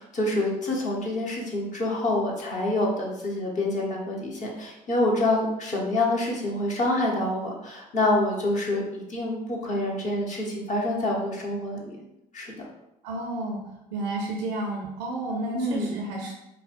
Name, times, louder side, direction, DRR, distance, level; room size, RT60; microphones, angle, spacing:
voice 1, 0.0-12.0 12.3-12.7 15.5-15.9, left 1 dB, 35° left, -2 dB, 1.0 m, -27 dB
voice 2, 13.0-13.6 13.9-16.3, right 2 dB, 70° right, 0 dB, 0.6 m, -31 dB
4.6 x 2.1 x 2.5 m, 0.88 s
figure-of-eight pair, 55°, 21 cm